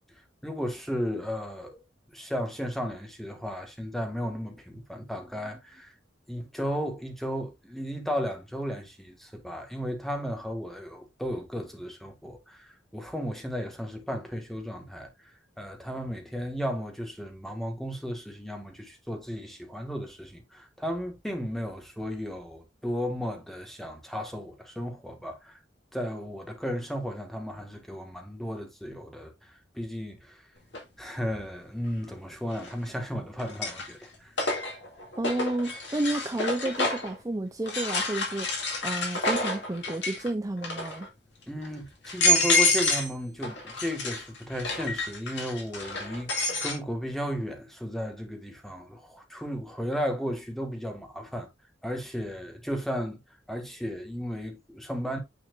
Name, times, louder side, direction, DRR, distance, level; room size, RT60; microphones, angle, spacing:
voice 1, 0.4-1.8 2.1-5.9 6.3-15.1 15.6-25.6 25.9-29.3 29.7-30.4 31.0-34.3 41.5-46.3 46.6-51.5 51.8-53.2 53.5-55.2, equal, ahead, 1.5 m, -34 dB
sound 1, 30.7-30.8 32.5-33.0 33.4-37.2 37.7-40.3 40.6-41.1 41.6-41.7 42.0-43.1 43.4-46.8, left 2 dB, 70° left, 2.2 m, -28 dB
voice 2, 35.2-41.1, right 2 dB, 20° right, 0.5 m, -31 dB
9.2 x 4.3 x 2.4 m
head